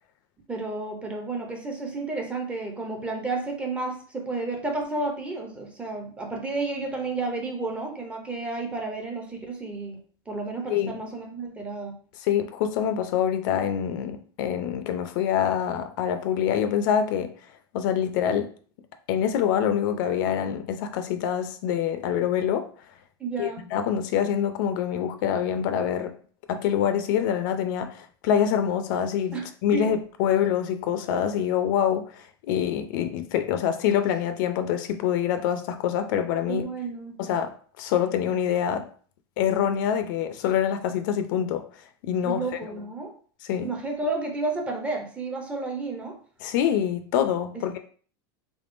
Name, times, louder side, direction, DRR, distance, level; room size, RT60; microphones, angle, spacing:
voice 1, 0.5-10.0 10.3-11.9 23.2-23.6 29.3-29.4 29.7-29.9 36.5-37.2 42.2-43.1 43.6-46.2 47.5-47.8, right 3 dB, 10° right, 0.4 m, -31 dB
voice 2, 12.2-17.3 17.7-18.5 19.1-22.7 23.4-26.2 26.5-36.7 37.2-38.9 39.4-41.7 42.0-42.4 43.5-43.7 46.4-47.8, left 9 dB, 55° left, 0.4 m, -25 dB
3.5 x 3.5 x 2.5 m
supercardioid pair, 170°, 13 cm